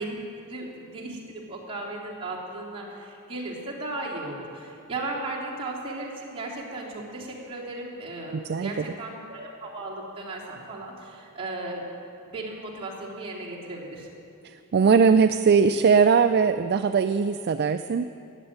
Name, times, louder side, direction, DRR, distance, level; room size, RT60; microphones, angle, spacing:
voice 1, 0.0-11.9 12.3-14.1, right 2 dB, 25° right, -6 dB, 3.3 m, -36 dB
voice 2, 14.4-18.0, right 5 dB, 45° right, 10 dB, 0.4 m, -20 dB
15.0 x 9.6 x 9.0 m, 2.7 s
head